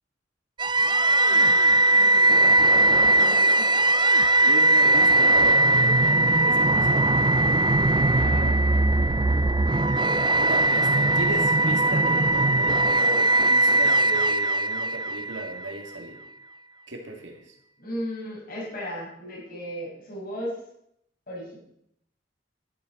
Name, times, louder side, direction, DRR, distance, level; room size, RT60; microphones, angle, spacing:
sound 1, 0.6-15.7, right 2 dB, 25° right, 0.5 m, -20 dB
voice 1, 1.3-1.6 1.9-2.5 2.9-3.7 7.8-9.0 17.8-20.5 21.3-21.6, equal, 55° left, -6 dB, 6.5 m, -37 dB
voice 2, 4.5-7.2 10.4-16.2 16.9-17.5, right 2 dB, 75° right, 2 dB, 2.8 m, -36 dB
12.0 x 11.0 x 5.4 m, 0.75 s
head